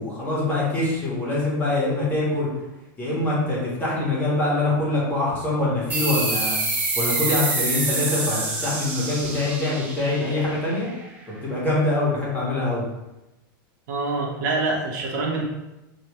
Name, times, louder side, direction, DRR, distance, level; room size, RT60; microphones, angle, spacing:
voice 1, 0.0-2.5 3.0-6.6 6.9-10.9 11.4-12.8, left 2 dB, 15° left, -6 dB, 1.5 m, -24 dB
sound 1, 5.9-11.1, right 3 dB, 15° right, 0.8 m, -27 dB
voice 2, 13.9-15.4, right 3 dB, 55° right, -1 dB, 1.0 m, -25 dB
5.0 x 3.0 x 3.1 m, 0.96 s
supercardioid pair, 145°, 12 cm